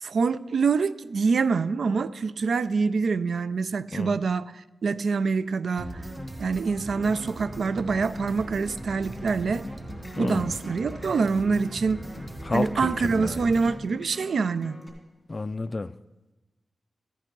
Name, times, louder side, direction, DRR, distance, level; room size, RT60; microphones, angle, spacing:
voice 1, 0.0-6.0 6.4-9.7 10.2-12.1 12.5-14.8, right 4 dB, 75° right, 0.3 m, -25 dB
sound 1, 5.8-13.8, right 1 dB, 20° right, 1.0 m, -39 dB
Acoustic guitar, 6.9-14.9, left 1 dB, 15° left, 2.7 m, -45 dB
voice 2, 10.2-10.5 12.4-13.4 15.3-15.9, left 3 dB, 35° left, 0.3 m, -30 dB
14.0 x 9.9 x 3.8 m
wide cardioid pair, 105°, 0 cm